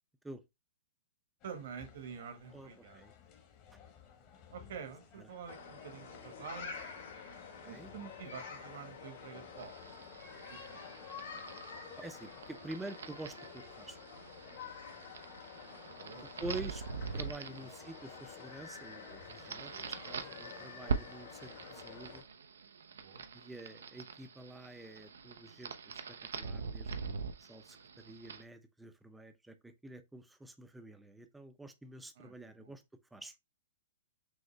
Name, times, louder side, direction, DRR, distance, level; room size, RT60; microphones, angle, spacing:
sound 1, 1.4-12.6, left 8 dB, 35° left, 1.2 m, -60 dB
voice 1, 1.4-3.0 4.5-6.7 7.6-9.7 10.5-10.8 16.0-16.3 17.5-17.6 21.6-21.7 23.0-23.2 32.2-32.3 32.6-32.7, right 7 dB, 65° right, 1.3 m, -47 dB
voice 2, 2.5-3.1 5.2-5.3 7.6-7.9 12.0-14.0 16.1-16.8 17.1-22.2 23.3-32.8 33.1-33.3, right 2 dB, 5° right, 0.5 m, -48 dB
sound 2, 5.5-22.2, left 6 dB, 65° left, 2.0 m, -49 dB
sound 3, 9.6-28.4, right 5 dB, 85° right, 0.5 m, -44 dB
6.3 x 2.1 x 3.1 m
hypercardioid pair, 135°, 0 cm